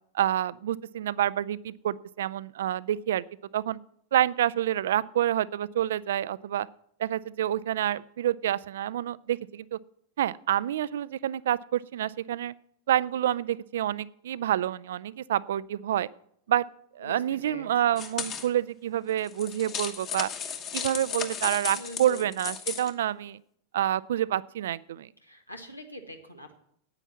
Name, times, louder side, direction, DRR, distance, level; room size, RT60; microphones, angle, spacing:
voice 1, 0.1-3.2 3.5-3.8 4.1-6.7 7.0-9.8 10.2-12.5 12.9-16.1 16.5-16.7 17.0-20.3 20.7-23.4 23.7-25.1, right 11 dB, 60° right, 20 dB, 0.3 m, -28 dB
voice 2, 17.0-18.0 21.7-22.3 25.2-26.6, equal, 90° left, 5 dB, 1.5 m, -44 dB
sound 1, 18.0-18.5 19.2-22.9, left 7 dB, 35° left, 1.4 m, -35 dB
9.7 x 9.0 x 7.2 m, 0.69 s
figure-of-eight pair, 90°, 0 cm